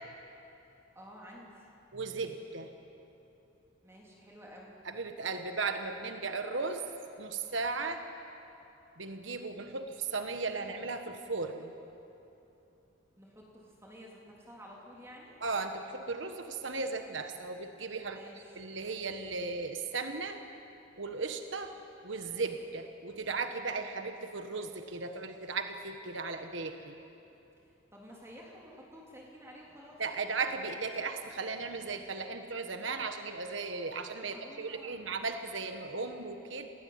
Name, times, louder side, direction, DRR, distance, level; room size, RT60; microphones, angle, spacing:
voice 1, 1.0-1.7 3.8-4.8 13.2-15.4 18.0-18.6 27.6-30.0 34.2-35.2, equal, 15° right, -3 dB, 3.4 m, -52 dB
voice 2, 1.9-2.7 4.8-6.9 7.2-8.0 9.0-11.7 15.4-20.4 21.0-21.7 22.0-27.0 30.0-36.7, right 4 dB, 65° right, 7 dB, 1.4 m, -36 dB
29.0 x 20.0 x 9.6 m, 2.9 s
head